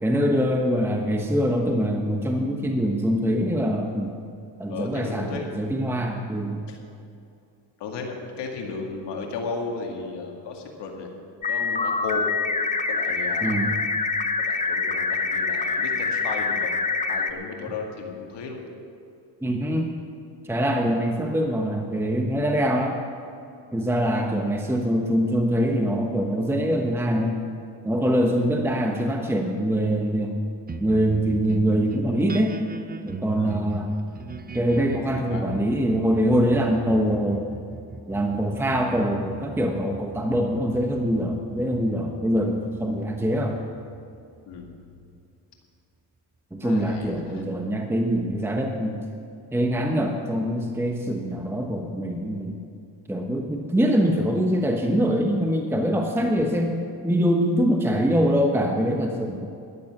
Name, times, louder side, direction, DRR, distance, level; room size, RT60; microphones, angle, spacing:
voice 1, 0.0-4.1 4.6-6.6 13.4-13.7 19.4-20.0 20.4-23.0 23.7-27.4 27.8-30.4 30.8-32.6 33.0-34.0 34.5-37.6 38.1-43.6 46.5-49.1 49.5-52.6 53.1-56.8 57.0-59.5, equal, 5° right, 2 dB, 1.1 m, -24 dB
voice 2, 4.7-5.5 6.7-6.8 7.8-11.1 11.5-12.3 12.9-13.6 14.4-16.7 17.1-18.6 28.3-28.5 33.4-33.6 35.1-35.5 44.5-44.7 46.6-47.4 56.2-56.4, left 4 dB, 65° left, 1 dB, 2.2 m, -35 dB
sound 1, 11.4-17.3, left 4 dB, 15° left, 0.8 m, -25 dB
sound 2, 30.7-45.4, right 4 dB, 20° right, 0.7 m, -40 dB
13.5 x 11.5 x 6.0 m, 2.5 s
cardioid pair, 100°, 44 cm